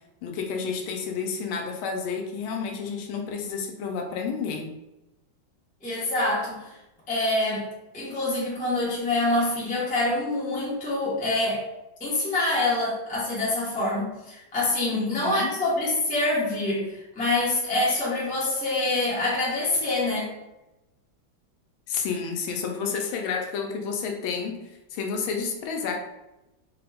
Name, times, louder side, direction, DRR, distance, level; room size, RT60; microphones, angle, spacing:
voice 1, 0.2-4.7 14.9-15.6 21.9-24.6 24.9-26.0, left 5 dB, 80° left, 2 dB, 1.4 m, -30 dB
voice 2, 5.8-6.7 7.1-7.6 7.9-11.6 12.0-20.3, left 2 dB, 5° left, -7 dB, 0.6 m, -26 dB
4.1 x 2.3 x 3.4 m, 0.97 s
omnidirectional pair, 2.3 m